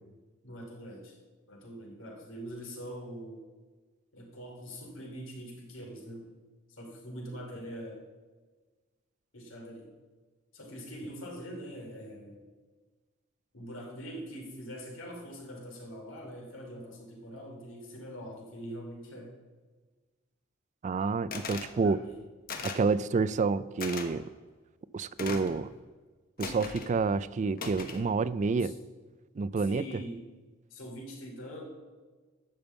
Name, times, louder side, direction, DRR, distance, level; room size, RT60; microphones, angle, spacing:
voice 1, 0.4-1.2 1.5-3.4 4.1-6.3 6.7-8.1 9.3-9.9 10.5-12.4 13.5-19.4 21.8-22.2 28.5-28.7 29.6-30.2 30.7-31.6, equal, 70° left, 0 dB, 2.9 m, -43 dB
voice 2, 20.8-22.0 22.6-24.3 24.9-25.7 26.4-28.7 29.4-29.8, right 4 dB, 35° right, 17 dB, 0.3 m, -28 dB
sound 1, 21.3-21.7 22.5-22.9 23.8-24.1 25.2-25.6 26.4-26.9 27.6-28.0, left 4 dB, 45° left, 1.1 m, -38 dB
12.0 x 5.3 x 8.0 m, 1.3 s
head